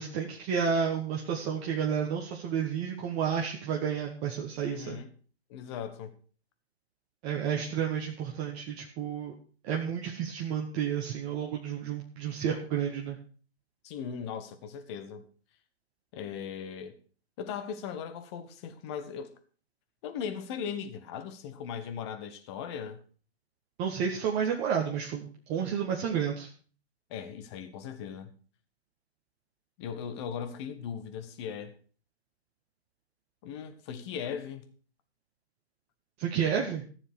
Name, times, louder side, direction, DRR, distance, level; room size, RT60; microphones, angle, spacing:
voice 1, 0.0-5.0 7.2-9.3 9.6-13.2 23.8-26.5 36.2-36.9, right 7 dB, 20° right, 1.2 m, -31 dB
voice 2, 4.6-5.1 5.5-6.2 13.8-15.3 16.1-16.9 17.4-19.3 20.0-23.0 27.1-28.3 29.8-31.7 33.4-34.7, left 7 dB, 25° left, 1.3 m, -38 dB
14.0 x 7.3 x 6.6 m
figure-of-eight pair, 135°, 33 cm